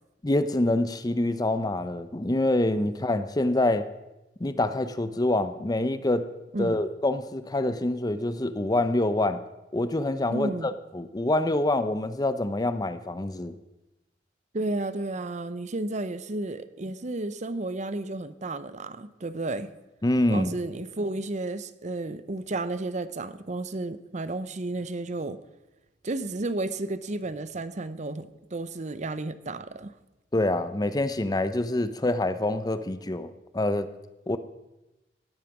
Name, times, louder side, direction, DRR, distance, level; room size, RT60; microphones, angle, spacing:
voice 1, 0.2-3.9 4.4-6.3 6.6-9.4 9.7-13.6 20.0-20.5 30.3-33.9 34.3-34.4, left 1 dB, 20° left, 0.6 m, -26 dB
voice 2, 10.3-10.7 14.5-19.7 20.3-25.4 26.0-29.9, right 2 dB, 40° right, 0.7 m, -32 dB
17.5 x 9.0 x 6.0 m
head